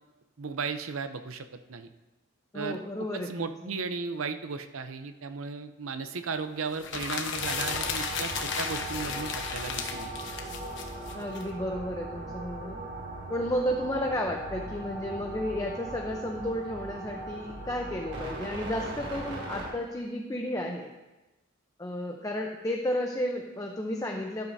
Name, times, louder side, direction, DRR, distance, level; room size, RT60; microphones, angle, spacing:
voice 1, 0.4-1.9 2.5-10.1, right 4 dB, 85° right, 9 dB, 0.7 m, -35 dB
voice 2, 2.5-3.8 11.1-12.8 13.3-20.9 21.8-24.5, left 1 dB, 15° left, 1 dB, 0.7 m, -32 dB
sound 1, 6.7-11.4, left 5 dB, 60° left, 1.1 m, -34 dB
sound 2, 7.3-19.7, right 1 dB, 60° right, 3.4 m, -39 dB
12.0 x 12.0 x 2.7 m, 1.1 s
head